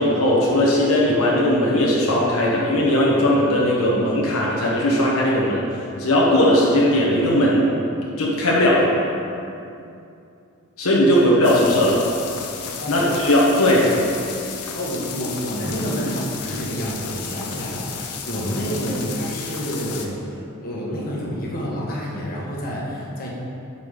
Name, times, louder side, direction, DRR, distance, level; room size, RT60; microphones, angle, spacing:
voice 1, 0.0-5.6 6.0-7.7 8.2-8.9 10.8-12.0 12.9-13.9, left 1 dB, 65° left, -4 dB, 1.1 m, -18 dB
sound 1, 11.4-20.1, left 6 dB, 85° left, 0.7 m, -33 dB
voice 2, 14.7-23.3, equal, 40° left, -5 dB, 1.3 m, -28 dB
5.7 x 4.8 x 6.5 m, 2.6 s
head